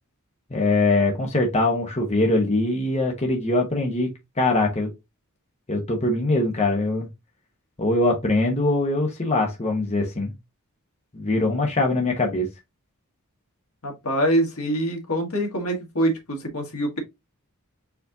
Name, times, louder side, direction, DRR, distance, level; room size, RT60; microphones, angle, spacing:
voice 1, 0.5-4.9 5.7-7.1 7.8-10.3 11.1-12.5, left 2 dB, 30° left, 1.1 m, -22 dB
voice 2, 13.8-17.0, right 1 dB, 80° left, 1.6 m, -24 dB
4.5 x 4.2 x 2.7 m
head